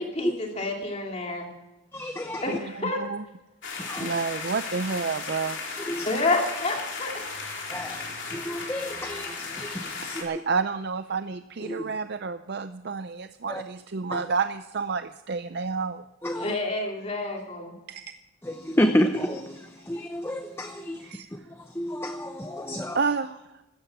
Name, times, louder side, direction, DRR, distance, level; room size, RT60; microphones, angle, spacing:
voice 1, 0.0-1.5 2.4-3.0 6.0-7.2 16.4-17.8, left 2 dB, 30° left, 1 dB, 2.8 m, -29 dB
voice 2, 1.9-2.4 3.8-4.2 5.9-6.1 7.7-10.2 11.6-11.8 13.5-13.6 14.1-14.2 16.2-16.5 18.4-21.0 21.8-23.0, equal, 10° left, 6 dB, 0.7 m, -30 dB
sound 1, 3.6-10.2, left 4 dB, 55° left, 4.1 m, -35 dB
voice 3, 4.0-5.6 10.2-16.0 17.9-18.0 21.0-21.3 22.9-23.4, right 5 dB, 50° right, 10 dB, 0.5 m, -29 dB
16.5 x 13.5 x 6.0 m, 0.98 s
head